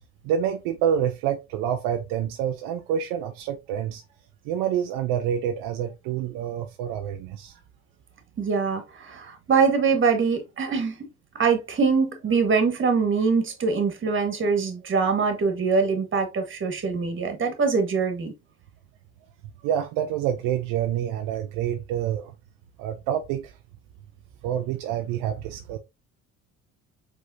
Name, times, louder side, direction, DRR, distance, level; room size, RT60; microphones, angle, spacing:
voice 1, 0.2-4.0 4.4-7.6 19.6-22.3 22.8-23.5 24.4-25.8, right 9 dB, 75° right, 0.7 m, -27 dB
voice 2, 8.4-11.0 11.3-18.3, right 5 dB, 35° right, 1.7 m, -23 dB
5.0 x 3.7 x 2.7 m
supercardioid pair, 75°, 34 cm